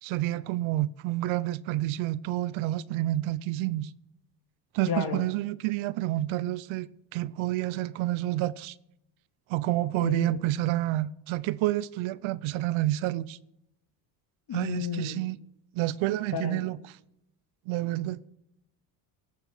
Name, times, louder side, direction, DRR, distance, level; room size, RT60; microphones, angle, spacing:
voice 1, 0.0-3.9 4.7-6.9 7.1-8.8 9.5-13.4 14.5-15.4 15.7-16.8 17.7-18.2, right 16 dB, 80° right, 0.7 m, -29 dB
voice 2, 4.9-5.2 10.0-10.4 14.5-15.2 16.3-16.6, left 7 dB, 50° left, 2.2 m, -32 dB
19.0 x 6.9 x 5.4 m
cardioid pair, 110°, 47 cm